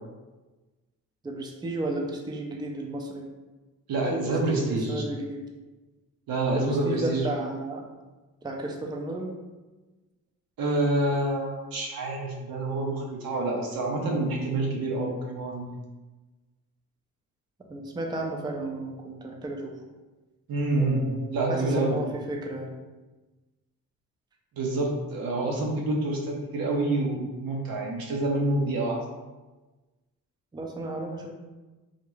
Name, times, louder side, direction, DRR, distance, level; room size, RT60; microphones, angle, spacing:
voice 1, 1.2-3.2 4.1-5.4 6.5-7.9 8.4-9.3 17.7-19.7 20.8-22.7 30.5-31.3, right 2 dB, 10° right, 0 dB, 0.4 m, -33 dB
voice 2, 3.9-5.0 6.3-7.3 10.6-15.7 20.5-21.0 21.3-22.0 24.6-29.0, right 2 dB, 75° right, -1 dB, 0.6 m, -27 dB
2.4 x 2.1 x 3.0 m, 1.2 s
supercardioid pair, 55°, 36 cm